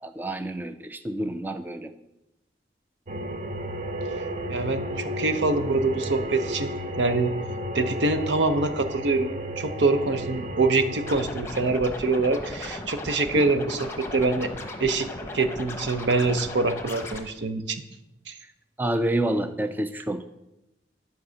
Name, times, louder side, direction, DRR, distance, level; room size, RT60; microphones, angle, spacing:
voice 1, 0.0-1.9 18.8-20.3, right 1 dB, 10° right, 9 dB, 0.3 m, -28 dB
sound 1, 3.1-11.2, equal, 40° right, 0.7 m, -33 dB
voice 2, 4.5-7.3 7.7-9.3 9.6-14.5 14.8-15.1 15.3-17.8 18.3-18.4, right 3 dB, 75° right, 9 dB, 0.8 m, -25 dB
Scratching (performance technique), 11.0-17.2, left 1 dB, 15° left, 1.0 m, -36 dB
11.0 x 4.8 x 6.3 m, 0.94 s
head